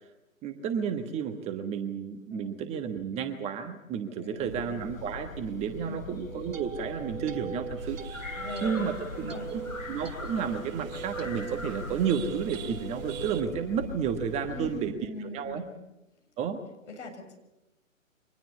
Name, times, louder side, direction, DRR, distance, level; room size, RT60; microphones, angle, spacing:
voice 1, 0.4-9.6 9.9-14.9 15.2-15.6 16.4-16.6, right 7 dB, 15° right, 7 dB, 1.3 m, -32 dB
voice 2, 4.1-4.8 5.8-6.1 8.3-9.5 14.5-15.8 16.9-17.4, left 3 dB, 60° left, 5 dB, 7.2 m, -41 dB
sound 1, 4.4-14.8, left 2 dB, 75° left, 7.9 m, -41 dB
sound 2, 6.0-14.4, right 6 dB, 70° right, 2.0 m, -42 dB
sound 3, 7.8-13.4, right 10 dB, 30° right, 2.5 m, -49 dB
24.5 x 20.0 x 8.2 m, 0.94 s
figure-of-eight pair, 130°, 41 cm